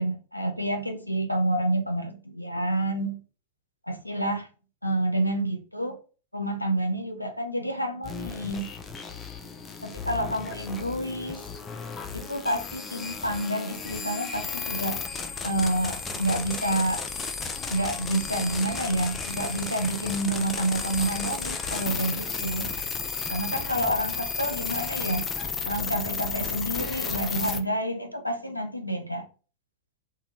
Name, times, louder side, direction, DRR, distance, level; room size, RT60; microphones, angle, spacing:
voice 1, 0.0-3.2 3.9-4.5 4.8-6.0 6.3-8.7 9.8-11.4 12.1-15.0 15.4-17.0 17.7-22.7 23.3-25.3 25.6-29.2, right 1 dB, 90° left, 0.4 m, -28 dB
sound 1, 8.0-27.6, left 5 dB, 20° left, 0.4 m, -33 dB
2.8 x 2.3 x 3.0 m
figure-of-eight pair, 90°, 0 cm